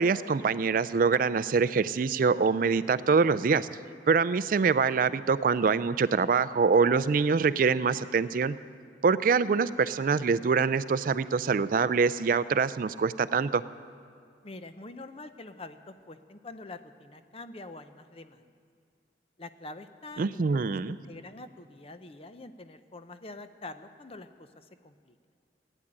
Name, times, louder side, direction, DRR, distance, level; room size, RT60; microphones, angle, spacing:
voice 1, 0.0-3.7 4.1-8.6 9.0-13.6 20.2-21.0, right 5 dB, 50° right, 15 dB, 0.4 m, -25 dB
voice 2, 14.4-18.5 19.4-25.2, left 2 dB, 30° left, 10 dB, 0.6 m, -45 dB
16.0 x 10.0 x 8.8 m, 2.3 s
head